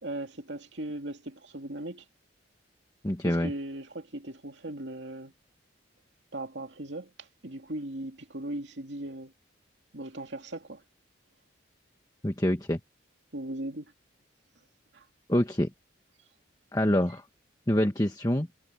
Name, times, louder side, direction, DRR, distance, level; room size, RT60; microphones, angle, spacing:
voice 1, 0.0-2.0 3.2-5.3 6.3-7.1 7.4-9.3 9.9-10.8 13.3-13.9 14.9-15.0, right 1 dB, 65° right, 2.6 m, -38 dB
voice 2, 3.0-3.5 12.2-12.8 15.3-15.7 16.7-17.2 17.7-18.5, left 1 dB, 20° left, 1.3 m, -26 dB
head